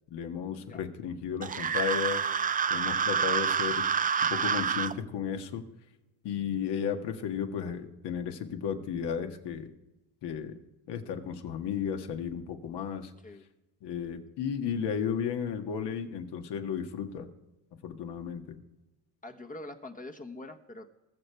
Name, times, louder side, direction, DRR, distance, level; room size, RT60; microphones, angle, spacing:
voice 1, 0.1-2.3 2.7-3.8 4.2-5.6 6.2-9.7 10.2-10.6 10.9-13.1 13.8-17.3 17.8-18.6, left 7 dB, 60° left, 5 dB, 1.7 m, -34 dB
sound 1, 1.4-4.9, right 7 dB, 20° right, 0.4 m, -28 dB
voice 2, 19.2-20.9, left 2 dB, 20° left, 3 dB, 1.1 m, -44 dB
20.5 x 6.8 x 4.5 m, 1.0 s
supercardioid pair, 90°, 44 cm